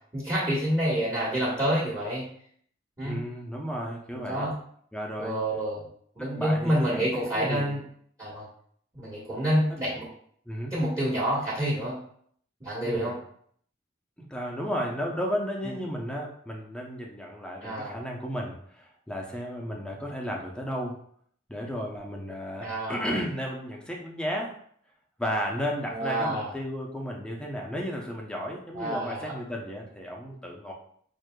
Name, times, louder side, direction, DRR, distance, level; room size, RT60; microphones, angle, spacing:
voice 1, 0.1-2.3 3.0-3.2 4.1-4.5 5.2-5.8 6.2-7.8 8.2-8.5 8.9-10.1 10.7-12.0 12.6-13.1 15.6-15.7 17.6-18.0 22.6-23.1 25.9-26.5 28.7-29.3, equal, 15° right, -9 dB, 1.2 m, -28 dB
voice 2, 3.0-4.5 4.9-5.4 6.4-7.7 9.7-9.8 10.5-10.7 12.8-13.1 14.2-20.9 21.5-24.5 25.2-30.7, equal, 5° left, -1 dB, 0.6 m, -33 dB
6.2 x 2.7 x 2.2 m, 0.62 s
head